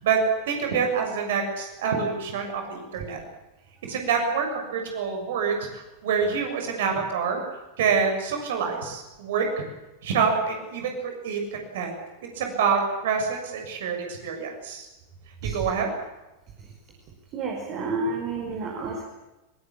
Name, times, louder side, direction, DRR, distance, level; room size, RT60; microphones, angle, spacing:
voice 1, 0.0-3.2 3.9-7.4 7.8-9.7 10.0-11.9 12.2-14.9 15.4-15.9, right 6 dB, 55° right, 3 dB, 6.9 m, -26 dB
voice 2, 17.3-19.0, right 3 dB, 35° right, 1 dB, 5.0 m, -30 dB
22.5 x 22.0 x 8.7 m, 1.1 s
figure-of-eight pair, 90°, 0 cm